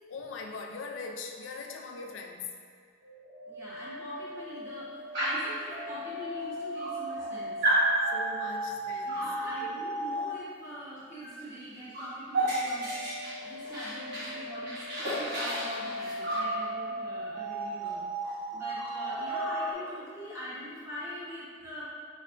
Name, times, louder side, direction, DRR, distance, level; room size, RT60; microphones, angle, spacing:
voice 1, 0.1-2.6 8.1-9.9, left 4 dB, 85° left, 2 dB, 0.4 m, -41 dB
sound 1, 3.0-10.4 12.4-19.7, right 1 dB, 80° right, 0.8 m, -38 dB
voice 2, 3.5-7.6 8.5-8.6 9.0-13.1 13.4-21.9, equal, 15° right, -10 dB, 1.1 m, -43 dB
Dog, 5.1-5.6 6.4-6.5 6.8-7.3 7.6-7.9 9.1-9.4 11.2-11.4 11.6-14.4 14.7-16.5 17.8-17.9 18.2-18.4 18.7-19.9, right 1 dB, 65° right, 1.4 m, -32 dB
4.5 x 3.2 x 2.5 m, 2.1 s
head